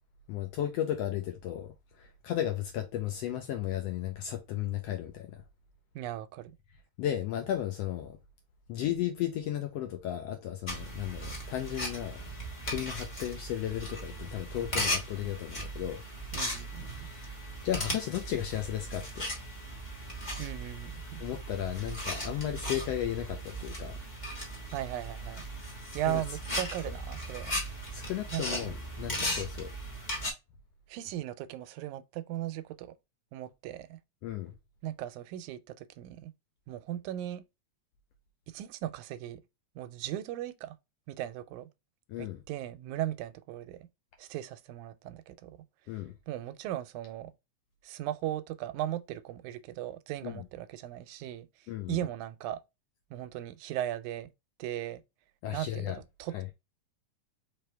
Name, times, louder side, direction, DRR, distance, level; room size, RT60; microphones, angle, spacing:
voice 1, 0.3-5.4 7.0-8.2 8.7-12.2 12.7-16.0 16.9-17.3 17.6-19.2 21.2-24.0 25.6-25.8 26.1-26.2 27.9-29.7 34.2-34.5 42.1-42.4 45.9-46.1 50.2-50.4 51.7-52.0 55.4-56.0 56.3-56.4, left 11 dB, 80° left, 1.5 m, -34 dB
voice 2, 6.0-6.6 16.3-17.1 20.4-21.2 24.7-25.5 25.9-27.6 28.3-28.6 30.9-33.0 33.3-34.0 34.8-36.3 36.7-37.4 38.5-39.4 39.8-40.8 41.1-41.7 42.2-43.9 44.2-45.6 46.3-47.3 47.8-51.5 51.9-52.6 53.1-54.3 54.6-55.0 55.5-55.9 56.2-56.5, right 12 dB, 90° right, 2.0 m, -37 dB
sound 1, 10.7-30.3, equal, 35° left, 0.7 m, -37 dB
4.7 x 3.4 x 3.3 m
omnidirectional pair, 3.4 m